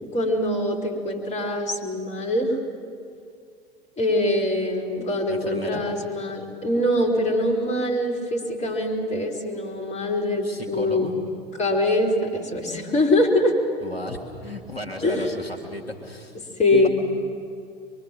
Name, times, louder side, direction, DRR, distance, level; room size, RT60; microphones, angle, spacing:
voice 1, 0.1-2.6 4.0-11.1 11.6-13.5 15.0-15.3 16.3-16.9, left 1 dB, 20° left, 2 dB, 4.2 m, -23 dB
voice 2, 5.3-5.8 10.4-11.2 13.8-16.3 16.7-16.9, left 2 dB, 85° left, 1 dB, 2.0 m, -34 dB
24.0 x 23.5 x 7.6 m, 2.3 s
figure-of-eight pair, 80°, 30 cm